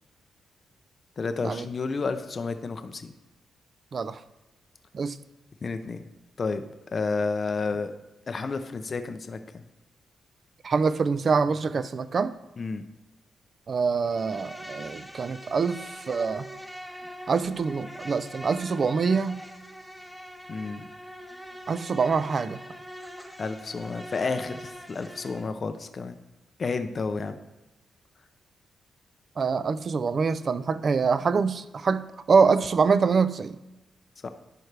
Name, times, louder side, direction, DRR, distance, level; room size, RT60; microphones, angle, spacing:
voice 1, 1.2-3.1 5.6-6.0 6.4-6.6 6.9-7.9 8.3-9.6 12.6-12.8 20.5-20.9 23.4-26.2 26.6-27.4 34.2-34.3, left 4 dB, 40° left, 8 dB, 0.5 m, -31 dB
voice 2, 10.6-12.3 13.7-16.5 17.3-19.4 21.7-22.6 29.4-33.6, right 5 dB, 45° right, 14 dB, 0.4 m, -25 dB
Insect, 14.0-25.5, equal, 5° right, 0.9 m, -43 dB
11.0 x 4.7 x 3.3 m, 1.0 s
cardioid pair, 100°, 0 cm